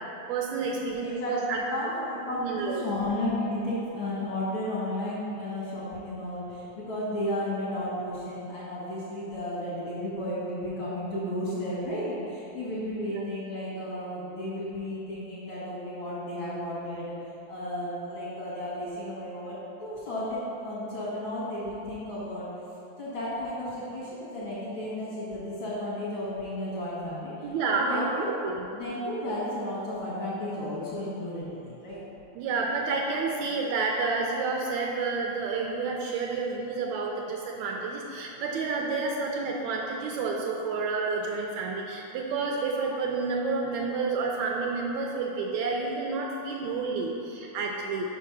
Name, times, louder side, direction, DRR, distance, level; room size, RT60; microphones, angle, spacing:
voice 1, 0.3-1.6 2.3-2.9 13.2-13.3 27.4-28.1 28.4-28.5 32.4-48.1, right 4 dB, 80° right, 0 dB, 1.8 m, -30 dB
voice 2, 1.0-17.1 17.5-22.5 23.0-28.4 28.7-32.0, left 1 dB, 50° left, -9 dB, 1.8 m, -33 dB
5.4 x 4.8 x 5.8 m, 2.8 s
omnidirectional pair, 3.5 m